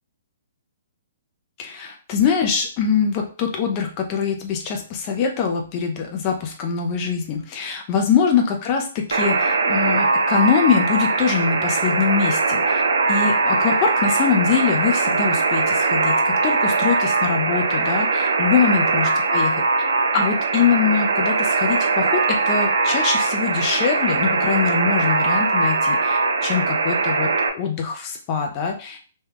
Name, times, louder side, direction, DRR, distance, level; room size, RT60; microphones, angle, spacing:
voice 1, 1.6-12.8 13.1-19.6 20.1-29.0, left 6 dB, 35° left, 2 dB, 0.5 m, -23 dB
Alarm, 9.1-27.5, right 3 dB, 80° right, 0.5 m, -21 dB
3.1 x 2.2 x 3.4 m, 0.39 s
hypercardioid pair, 135°, 0 cm